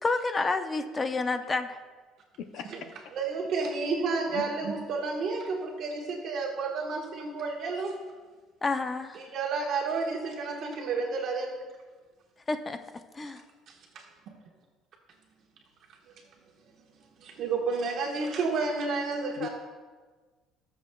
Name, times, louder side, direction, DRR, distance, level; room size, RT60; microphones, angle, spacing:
voice 1, 0.0-1.8 8.6-9.2 12.5-12.8 13.2-13.4, left 3 dB, 20° left, 8 dB, 0.6 m, -29 dB
voice 2, 2.4-2.9 4.3-4.5 19.4-19.5, left 9 dB, 65° left, 7 dB, 0.6 m, -38 dB
voice 3, 3.1-8.0 9.1-11.6 13.7-14.0 17.2-19.5, right 4 dB, 50° right, 0 dB, 1.4 m, -31 dB
19.5 x 7.2 x 2.3 m, 1.4 s
cardioid pair, 150°, 0 cm